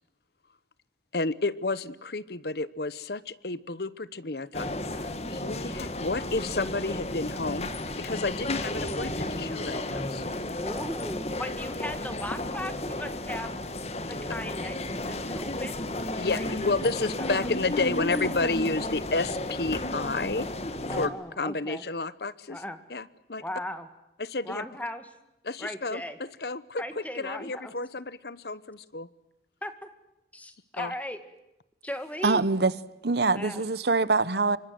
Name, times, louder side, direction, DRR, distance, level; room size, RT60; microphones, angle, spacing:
voice 1, 1.1-4.7 5.0-10.3 16.2-20.5 20.9-22.6 22.9-23.4 24.2-24.7 25.4-29.1 30.8-30.9, left 3 dB, 60° left, 1.0 m, -31 dB
sound 1, 4.5-21.1, left 1 dB, 35° left, 1.9 m, -33 dB
voice 2, 10.5-13.5 14.1-15.9 16.3-16.5 17.3-17.5 20.8-21.8 22.5-22.8 23.4-23.9 24.4-25.1 25.6-26.2 26.8-27.7 29.6-29.9 30.3-31.2 31.8-32.4 33.3-33.6, left 1 dB, 10° left, 2.1 m, -37 dB
voice 3, 32.2-32.7 33.0-34.6, right 3 dB, 65° right, 1.0 m, -24 dB
27.0 x 25.0 x 7.8 m
head